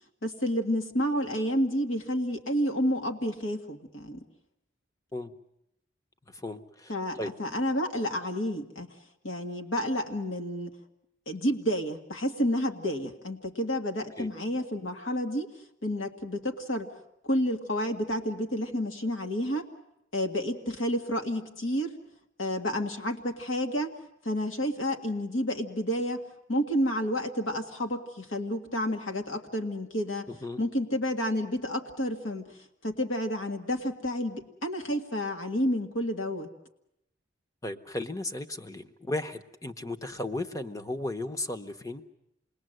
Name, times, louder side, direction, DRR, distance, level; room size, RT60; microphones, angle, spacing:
voice 1, 0.2-4.2 6.9-8.9 9.2-10.7 11.3-15.5 15.8-16.9 17.2-19.7 20.1-22.0 22.4-23.9 24.3-26.2 26.5-30.3 30.6-32.5 32.8-36.5, equal, 85° left, 4 dB, 1.9 m, -30 dB
voice 2, 6.3-6.9 7.2-7.3 14.2-14.3 30.3-30.6 37.6-42.0, left 2 dB, 15° left, 8 dB, 0.9 m, -35 dB
28.0 x 20.5 x 7.8 m, 0.82 s
head